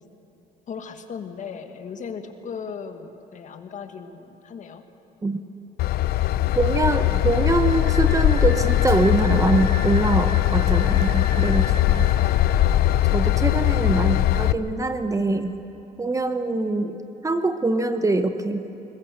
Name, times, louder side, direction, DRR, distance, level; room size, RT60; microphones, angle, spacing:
voice 1, 0.7-4.8 12.2-12.9, left 6 dB, 45° left, 6 dB, 1.7 m, -37 dB
Train / Engine, 5.8-14.5, left 13 dB, 65° left, 0.6 m, -20 dB
voice 2, 6.6-12.1 13.1-15.6 16.0-17.0 17.2-18.6, right 2 dB, 20° right, 8 dB, 0.9 m, -23 dB
Wind instrument woodwind instrument, 7.3-12.1, left 1 dB, 30° left, 4.3 m, -37 dB
22.0 x 21.0 x 6.7 m, 2.9 s
cardioid pair, 110°, 17 cm